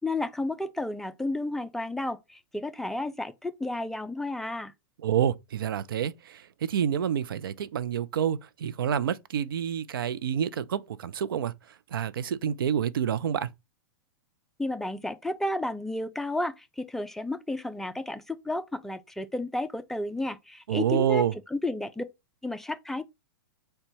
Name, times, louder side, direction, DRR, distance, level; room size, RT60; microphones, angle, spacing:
voice 1, 0.0-4.7 14.6-21.2 21.5-22.0 22.4-23.0, left 2 dB, 5° left, 0.4 m, -32 dB
voice 2, 5.0-13.5 20.7-21.4, right 9 dB, 80° right, 0.5 m, -28 dB
3.9 x 2.2 x 4.5 m
hypercardioid pair, 125°, 12 cm